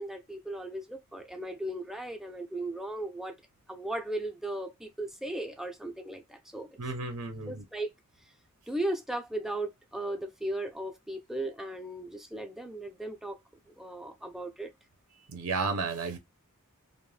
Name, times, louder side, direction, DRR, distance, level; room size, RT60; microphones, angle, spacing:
voice 1, 0.0-3.3 3.7-6.8 7.5-7.9 8.7-13.4 13.8-14.7, right 1 dB, ahead, 0.4 m, -36 dB
voice 2, 6.8-7.6 15.3-16.2, right 4 dB, 90° right, 0.7 m, -32 dB
2.5 x 2.1 x 3.1 m
head